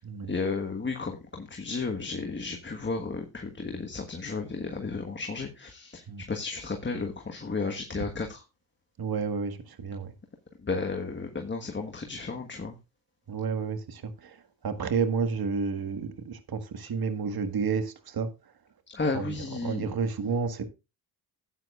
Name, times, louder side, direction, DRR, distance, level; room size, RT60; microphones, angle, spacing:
voice 1, 0.3-8.4 10.6-12.8 18.9-19.9, left 4 dB, 25° left, 1.4 m, -33 dB
voice 2, 9.0-10.1 13.3-18.3 19.1-19.4 19.6-20.6, right 5 dB, 50° right, 1.7 m, -31 dB
13.0 x 9.0 x 2.4 m
supercardioid pair, 65°, 47 cm